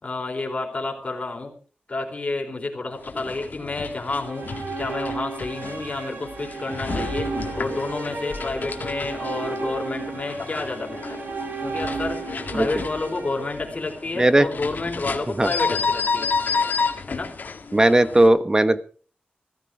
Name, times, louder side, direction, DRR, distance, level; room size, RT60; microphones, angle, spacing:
voice 1, 0.0-1.5 1.9-4.5 4.8-11.2 11.6-12.2 12.5-16.3 17.1-17.3, left 3 dB, 40° left, 2 dB, 4.2 m, -30 dB
sound 1, 2.9-18.3, left 5 dB, 65° left, 1.9 m, -31 dB
sound 2, 4.0-14.2, right 4 dB, 75° right, 3.1 m, -34 dB
voice 2, 14.2-14.5 15.4-15.5 17.7-18.8, right 1 dB, 20° right, 13 dB, 1.1 m, -17 dB
16.0 x 14.0 x 4.9 m, 0.41 s
wide cardioid pair, 95°, 3 cm